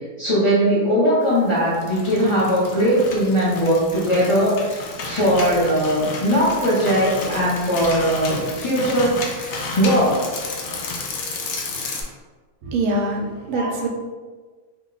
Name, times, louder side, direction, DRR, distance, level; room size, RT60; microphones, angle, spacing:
voice 1, 0.2-10.3 13.5-13.7, equal, 30° left, -8 dB, 0.5 m, -20 dB
sound 1, 1.6-12.0, left 3 dB, 65° left, 0.7 m, -32 dB
voice 2, 12.6-13.9, right 2 dB, 80° right, 0 dB, 1.1 m, -24 dB
2.8 x 2.1 x 3.8 m, 1.4 s
omnidirectional pair, 1.5 m